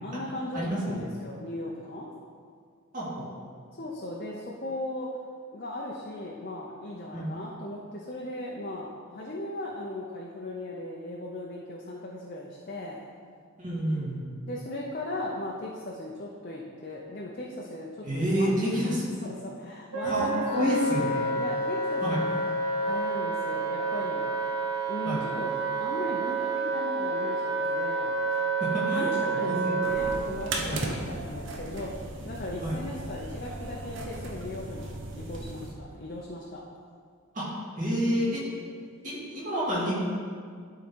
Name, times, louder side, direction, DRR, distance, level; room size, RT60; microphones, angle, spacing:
voice 1, 0.0-2.1 3.8-5.1 5.5-13.0 14.5-20.7 21.0-22.3 22.8-24.3 24.9-25.5 25.8-28.2 28.9-31.9 32.2-36.6, left 1 dB, 40° left, -3 dB, 0.7 m, -37 dB
voice 2, 0.5-1.0 2.9-3.3 7.1-7.3 13.6-14.2 18.0-19.0 20.0-21.1 22.0-22.4 25.0-25.2 28.3-29.2 29.5-29.9 30.7-30.8 32.6-32.8 37.3-38.4 39.0-39.9, equal, 35° right, -8 dB, 2.1 m, -29 dB
Wind instrument woodwind instrument, 19.9-30.2, right 3 dB, 85° right, 1.9 m, -29 dB
sound 1, 29.8-35.7, right 2 dB, 55° right, 0.9 m, -37 dB
11.5 x 3.9 x 4.5 m, 2.1 s
head